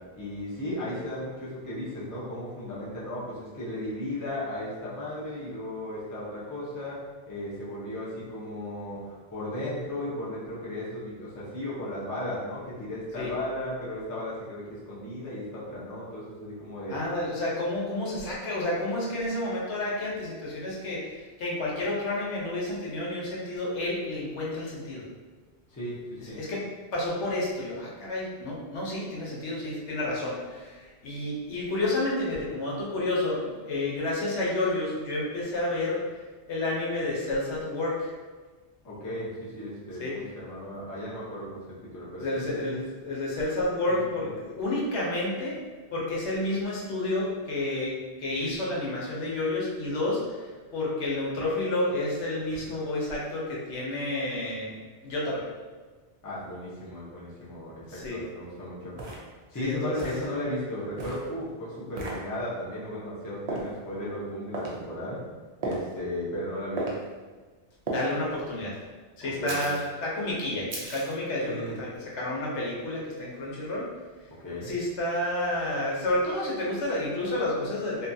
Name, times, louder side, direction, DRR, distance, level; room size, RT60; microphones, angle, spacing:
voice 1, 0.1-7.0 7.3-17.0 25.7-26.4 38.8-42.2 42.6-42.7 43.9-44.3 56.2-59.0 59.5-65.2 65.6-66.9 69.4-69.6 71.5-71.7 74.4-74.7, left 1 dB, 20° left, -7 dB, 0.5 m, -35 dB
voice 2, 16.9-25.0 26.2-26.6 26.9-36.0 36.5-38.1 40.0-40.2 42.2-45.6 45.9-47.9 48.2-50.4 50.7-54.7 55.0-55.4 57.9-58.2 59.6-60.0 67.9-68.7 69.2-73.8 74.6-78.1, left 2 dB, 80° left, -5 dB, 1.0 m, -30 dB
sound 1, 58.2-58.3 59.0-59.3 60.0-60.3 61.0-61.2 62.0-62.2 63.5-63.7 64.5-64.8 65.6-65.9 66.8-67.0 67.9-68.1 69.5-69.9 70.7-71.1, right 2 dB, 55° right, 0.4 m, -34 dB
2.7 x 2.3 x 2.6 m, 1.4 s
omnidirectional pair, 1.2 m